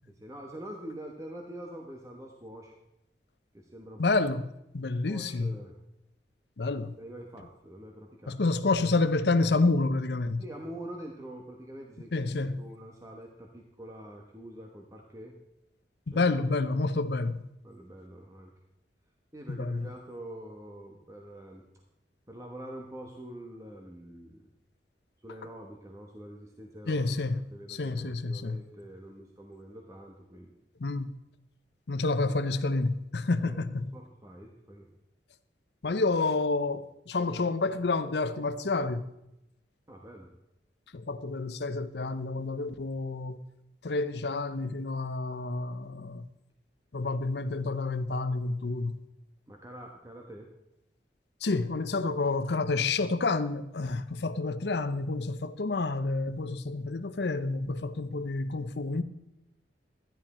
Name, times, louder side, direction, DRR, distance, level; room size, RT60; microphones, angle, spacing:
voice 1, 0.1-2.7 3.5-4.0 5.1-5.7 6.8-8.4 10.4-15.4 16.1-16.5 17.6-18.5 19.3-21.6 22.3-24.5 25.2-27.2 27.5-30.6 33.4-34.9 39.9-40.3 49.5-50.5, right 1 dB, 20° right, 1.1 m, -45 dB
voice 2, 4.0-4.5 4.7-5.6 6.6-7.0 8.3-10.4 12.1-12.6 16.1-17.5 19.5-19.9 26.9-28.6 30.8-31.1 31.9-34.0 35.8-39.0 40.9-43.4 43.8-46.3 46.9-49.0 51.4-59.0, left 3 dB, 75° left, 0.7 m, -29 dB
13.0 x 10.5 x 4.3 m
head